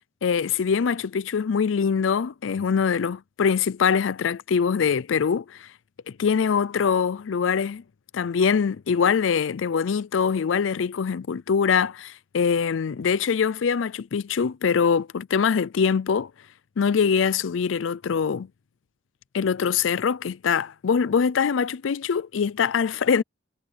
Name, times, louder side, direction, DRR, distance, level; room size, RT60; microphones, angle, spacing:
voice 1, 0.2-5.7 6.2-7.8 8.1-16.3 16.8-18.5 19.3-23.2, left 6 dB, 80° left, 0.4 m, -23 dB
head